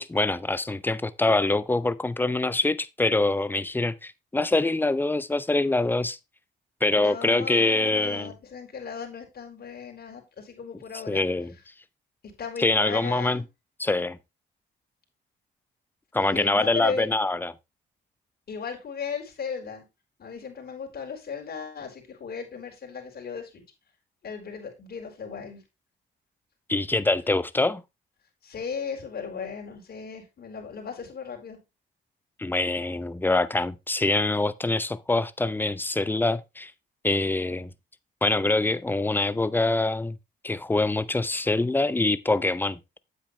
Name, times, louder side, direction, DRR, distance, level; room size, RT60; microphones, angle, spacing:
voice 1, 0.0-6.2 6.8-8.3 11.1-11.5 12.6-13.4 13.8-14.2 16.1-17.5 26.7-27.8 32.4-36.7 37.0-37.7 38.2-40.2 40.4-42.8, left 2 dB, 10° left, 0.7 m, -24 dB
voice 2, 6.9-11.2 12.4-13.4 16.2-17.1 18.5-19.8 20.2-23.6 24.2-25.6 28.4-31.6, left 6 dB, 50° left, 4.3 m, -36 dB
9.4 x 8.2 x 3.2 m
cardioid pair, 90°, 20 cm